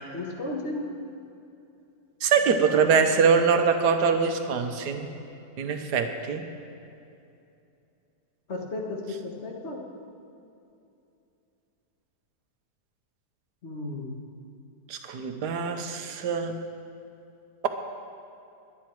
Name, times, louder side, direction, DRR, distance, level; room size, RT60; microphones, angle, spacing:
voice 1, 0.1-0.9 8.5-9.8 13.6-14.2, left 2 dB, 40° left, 0 dB, 1.8 m, -34 dB
voice 2, 2.2-5.1 5.6-6.4 14.9-16.5, right 6 dB, 75° right, 6 dB, 1.5 m, -23 dB
22.0 x 9.6 x 4.7 m, 2.7 s
omnidirectional pair, 1.8 m